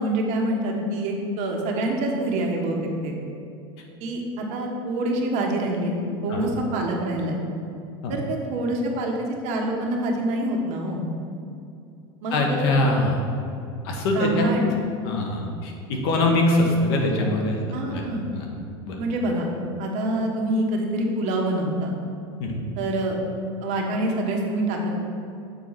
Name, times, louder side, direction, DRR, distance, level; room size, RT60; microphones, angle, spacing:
voice 1, 0.0-3.1 4.0-7.4 8.1-11.1 12.2-12.7 14.1-14.6 17.7-18.2 19.0-19.5 19.8-22.0 22.8-23.2 23.6-24.9, right 1 dB, 55° right, 0 dB, 1.4 m, -26 dB
voice 2, 12.3-13.2 13.8-14.5 15.0-17.6 17.9-18.0 18.3-18.4 18.9-19.0 22.4-22.6, left 2 dB, 70° left, 1 dB, 1.5 m, -23 dB
6.8 x 4.7 x 5.7 m, 2.5 s
supercardioid pair, 120°, 14 cm